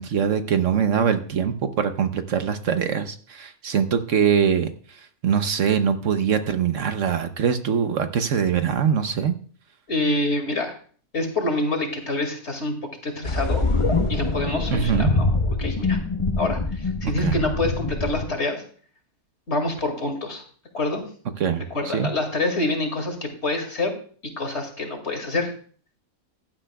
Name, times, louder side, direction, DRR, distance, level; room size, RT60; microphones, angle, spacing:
voice 1, 0.0-9.3 14.7-15.1 17.0-17.4 21.4-21.6 21.9-22.1, right 7 dB, 65° right, 9 dB, 1.1 m, -23 dB
voice 2, 9.9-10.7 11.1-12.7 13.0-13.6 14.1-16.0 16.4-18.6 19.5-20.4 20.7-21.0 21.7-23.9 24.4-25.5, left 2 dB, 50° left, 4 dB, 2.5 m, -26 dB
sound 1, 13.2-18.2, left 3 dB, 30° left, 0.7 m, -24 dB
15.5 x 12.0 x 2.3 m, 0.44 s
omnidirectional pair, 1.5 m